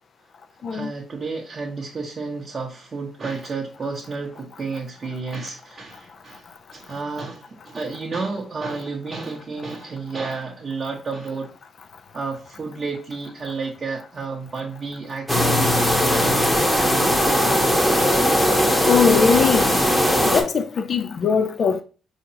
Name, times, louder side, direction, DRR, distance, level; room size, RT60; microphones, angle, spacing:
voice 1, 0.7-11.5 12.1-15.8 16.1-17.4, right 4 dB, 35° right, 0.7 m, -31 dB
sound 1, 15.3-20.4, equal, 10° left, 0.9 m, -19 dB
voice 2, 18.9-19.8 20.3-21.8, left 6 dB, 50° left, 0.3 m, -20 dB
4.4 x 2.8 x 2.7 m
cardioid pair, 90°, 0 cm